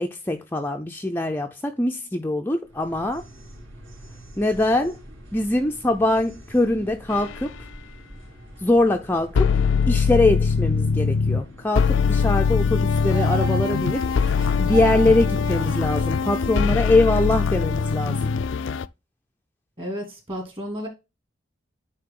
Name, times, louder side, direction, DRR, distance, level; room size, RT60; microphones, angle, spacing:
voice 1, 0.0-3.2 4.4-5.0 5.3-7.5 8.6-9.5 9.9-14.0 14.6-18.3, left 2 dB, 10° left, 0.5 m, -23 dB
sound 1, 2.6-17.1, right 1 dB, 70° right, 3.9 m, -39 dB
sound 2, 7.1-7.3 9.4-11.4 11.8-18.9, left 5 dB, 65° left, 0.4 m, -22 dB
voice 2, 19.8-20.9, equal, 25° right, 2.6 m, -32 dB
9.5 x 3.5 x 3.7 m
head